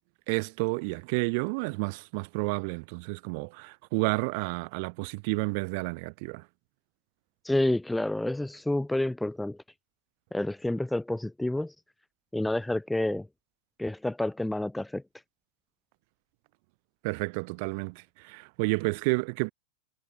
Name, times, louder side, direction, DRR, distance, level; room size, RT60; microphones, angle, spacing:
voice 1, 0.3-6.4 17.0-19.5, right 31 dB, 45° right, 5.1 m, -30 dB
voice 2, 7.4-9.6 10.3-11.7 12.3-13.3 13.8-15.0, left 1 dB, 5° left, 1.0 m, -29 dB
figure-of-eight pair, 90°, 0 cm